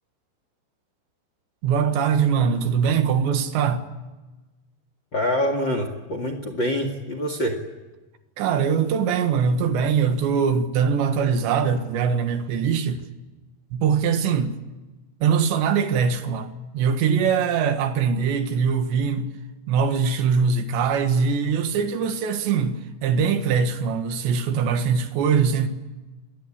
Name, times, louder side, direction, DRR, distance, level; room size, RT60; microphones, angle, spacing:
voice 1, 1.6-3.8 8.4-13.0 13.7-14.5 15.2-19.3 19.7-25.7, right 6 dB, 80° right, 3.8 m, -22 dB
voice 2, 5.1-7.5, equal, 40° left, 1.9 m, -25 dB
27.5 x 20.5 x 8.8 m
omnidirectional pair, 5.1 m